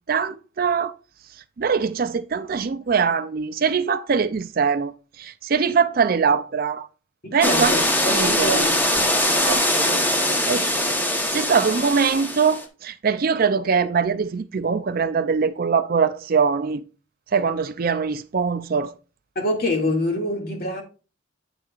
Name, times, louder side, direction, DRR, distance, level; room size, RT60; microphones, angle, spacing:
voice 1, 0.1-0.9 1.6-6.9 7.3-7.7 8.1-8.7 9.5-10.0 10.5-16.8 17.3-18.9, right 6 dB, 50° right, 0.4 m, -22 dB
voice 2, 7.2-9.2 19.4-20.8, left 1 dB, 50° left, 2.2 m, -26 dB
sound 1, 7.4-12.6, left 1 dB, 10° left, 1.1 m, -22 dB
8.9 x 7.4 x 2.4 m
head